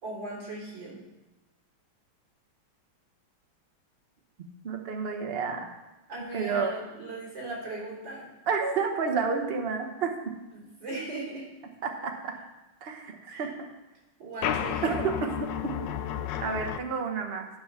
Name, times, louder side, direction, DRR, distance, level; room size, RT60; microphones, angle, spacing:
voice 1, 0.0-1.0 6.1-8.3 10.5-11.5 13.3-13.5 14.2-15.0, right 2 dB, 55° right, -5 dB, 4.1 m, -38 dB
voice 2, 4.6-5.7 6.3-6.7 8.5-10.3 11.8-12.4 12.8-13.5 14.8-15.3 15.6-15.7 16.4-17.5, right 5 dB, 40° right, 3 dB, 0.9 m, -30 dB
sound 1, 14.4-16.8, left 9 dB, 70° left, 1.1 m, -32 dB
11.5 x 5.3 x 5.7 m, 1.1 s
omnidirectional pair, 2.4 m